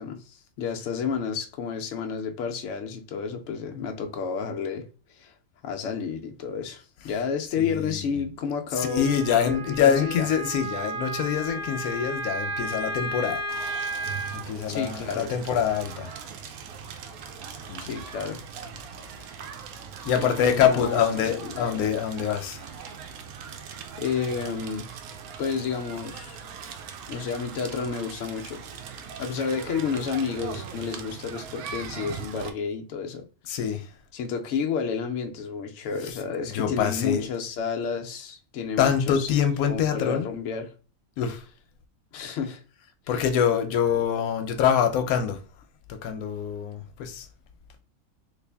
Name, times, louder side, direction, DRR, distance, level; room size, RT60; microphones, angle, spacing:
voice 1, 0.0-5.3 5.6-10.3 14.7-15.3 17.8-18.4 20.0-21.9 24.0-24.9 25.4-26.4 27.1-28.7 29.2-33.6 34.1-39.4 39.7-40.7 42.1-42.6 43.1-43.2, left 6 dB, 70° left, 0.8 m, -31 dB
voice 2, 7.6-8.2 8.8-13.4 14.3-16.1 17.7-18.0 20.0-22.7 33.5-33.9 36.5-37.2 38.8-40.3 41.2-41.4 43.1-45.4 45.9-47.3, left 8 dB, 90° left, 1.1 m, -25 dB
Wind instrument woodwind instrument, 8.7-14.4, right 1 dB, 50° right, 0.9 m, -33 dB
Crackle, 13.5-32.5, right 7 dB, 90° right, 1.1 m, -40 dB
3.3 x 2.4 x 3.3 m
omnidirectional pair, 1.5 m